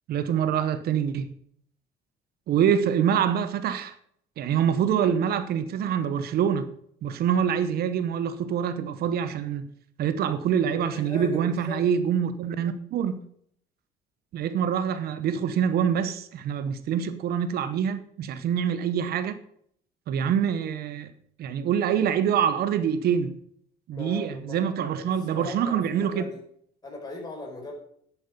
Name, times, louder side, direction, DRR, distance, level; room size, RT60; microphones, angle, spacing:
voice 1, 0.1-1.3 2.5-3.9 4.4-6.7 7.0-9.7 10.0-13.2 14.3-19.4 20.1-21.1 21.4-23.4 23.9-26.3, right 8 dB, 65° right, 0.9 m, -25 dB
voice 2, 10.7-11.8 23.9-24.6 25.0-26.4 26.8-27.7, left 2 dB, 25° left, 5.0 m, -39 dB
10.5 x 8.7 x 5.3 m
cardioid pair, 110°, 17 cm